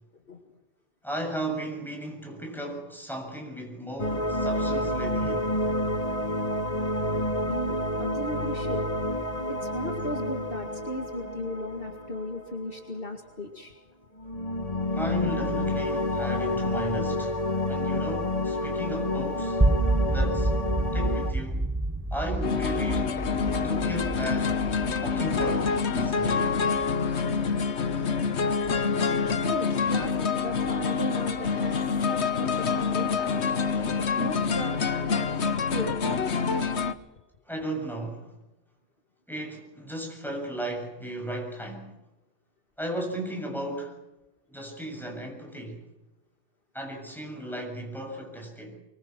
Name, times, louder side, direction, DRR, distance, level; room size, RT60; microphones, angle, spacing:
voice 1, 1.0-5.5 14.9-17.4 17.7-19.6 20.0-20.5 20.9-21.7 22.1-23.1 23.6-24.6 25.0-26.6 33.7-34.0 37.5-38.3 39.3-41.9 42.8-44.0 44.5-45.8 46.7-48.8, right 1 dB, ahead, 7.3 m, -35 dB
sound 1, 4.0-13.0 14.2-21.3, left 1 dB, 30° left, 1.4 m, -29 dB
voice 2, 7.5-8.8 9.5-13.7 29.4-33.3 34.2-35.3 35.7-35.9, left 1 dB, 50° left, 2.2 m, -36 dB
sound 2, 19.6-29.6, right 2 dB, 15° right, 0.5 m, -30 dB
sound 3, 22.4-36.9, left 5 dB, 65° left, 1.4 m, -26 dB
25.0 x 23.0 x 6.1 m
omnidirectional pair, 1.2 m